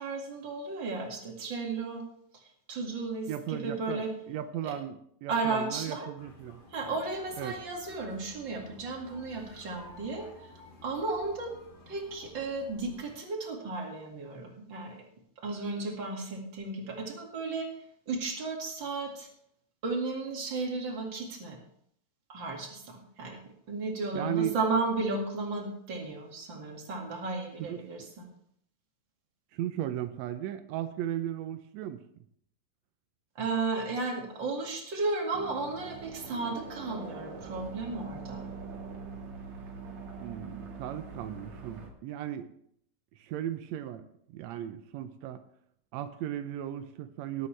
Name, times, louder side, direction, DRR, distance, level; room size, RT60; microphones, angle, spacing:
voice 1, 0.0-2.0 2.3-2.4 2.7-4.1 4.6-4.7 5.3-6.1 6.7-10.5 10.8-11.5 11.9-15.0 15.4-17.7 18.1-19.3 19.8-21.6 22.3-23.4 23.7-28.3 33.4-38.5, right 3 dB, 40° right, 0 dB, 2.5 m, -34 dB
voice 2, 3.3-6.6 7.4-7.6 24.1-24.5 27.6-28.1 29.5-32.0 40.2-42.5 43.2-44.0 44.3-45.4 45.9-47.5, right 11 dB, 90° right, 9 dB, 1.5 m, -36 dB
sound 1, 6.2-13.1, left 3 dB, 60° left, 4.1 m, -53 dB
sound 2, 35.3-41.9, right 4 dB, 60° right, 2.6 m, -43 dB
18.5 x 8.4 x 3.3 m, 0.69 s
omnidirectional pair, 3.9 m